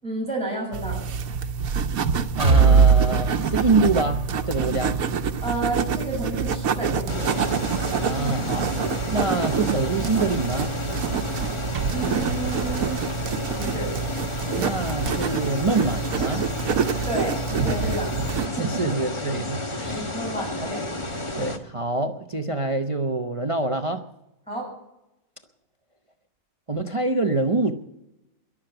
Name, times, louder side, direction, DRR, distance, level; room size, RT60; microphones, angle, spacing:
voice 1, 0.0-1.1 5.4-7.3 11.9-13.0 13.5-13.9 17.0-19.0 19.9-20.8 24.5-24.7, right 2 dB, 5° left, -3 dB, 7.1 m, -31 dB
sound 1, 0.7-18.5, right 6 dB, 85° right, 1.3 m, -27 dB
voice 2, 2.4-5.0 8.0-8.7 9.1-10.7 14.6-16.5 18.5-20.6 21.4-24.0 26.7-27.7, right 2 dB, 30° right, 6 dB, 0.8 m, -26 dB
sound 2, 2.4-10.2 10.6-10.7 11.1-11.2, right 5 dB, 60° right, 2.1 m, -24 dB
sound 3, 7.1-21.6, left 2 dB, 20° left, 1.2 m, -31 dB
22.0 x 7.4 x 7.9 m, 0.89 s
omnidirectional pair, 1.4 m